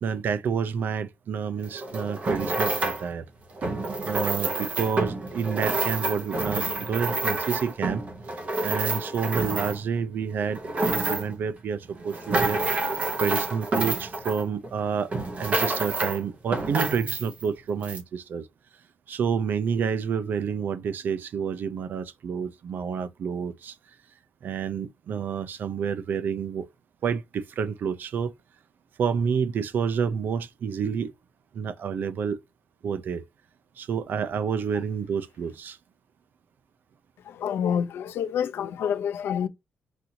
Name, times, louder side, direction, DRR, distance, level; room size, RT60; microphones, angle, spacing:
voice 1, 0.0-3.3 4.0-8.0 8.6-12.9 13.2-15.1 15.4-18.5 19.1-23.8 24.4-26.7 27.0-28.3 29.0-31.1 31.5-32.4 32.8-33.2 33.8-35.8, right 6 dB, 55° right, 0.5 m, -29 dB
sound 1, 1.6-3.1 3.6-10.0 10.4-11.4 11.9-14.8 15.1-16.2 16.5-17.5 17.8-18.0, right 2 dB, 35° right, 0.9 m, -28 dB
voice 2, 37.2-39.5, left 8 dB, 85° left, 0.6 m, -27 dB
5.9 x 2.6 x 2.8 m
wide cardioid pair, 165°, 4 cm